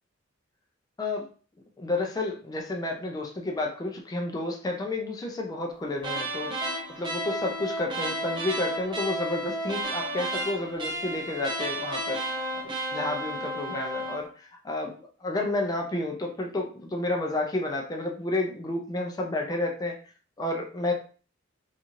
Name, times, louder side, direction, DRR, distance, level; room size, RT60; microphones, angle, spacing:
voice 1, 1.8-6.5 7.0-20.0 20.4-20.9, left 2 dB, 20° left, 1 dB, 0.4 m, -31 dB
sound 1, 6.0-14.3, right 1 dB, 25° right, 0.6 m, -32 dB
2.6 x 2.4 x 2.9 m, 0.40 s
head